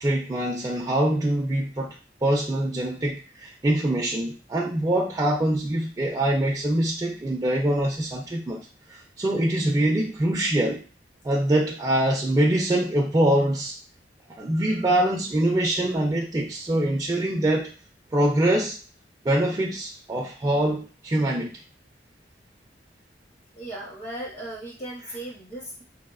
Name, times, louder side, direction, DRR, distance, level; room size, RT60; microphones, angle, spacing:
voice 1, 0.0-10.8 11.2-13.8 14.3-17.7 18.1-18.8 19.2-21.6, right 1 dB, 20° right, -2 dB, 0.3 m, -24 dB
voice 2, 23.5-25.8, right 1 dB, 40° left, -3 dB, 0.7 m, -37 dB
3.1 x 2.0 x 2.3 m, 0.34 s
head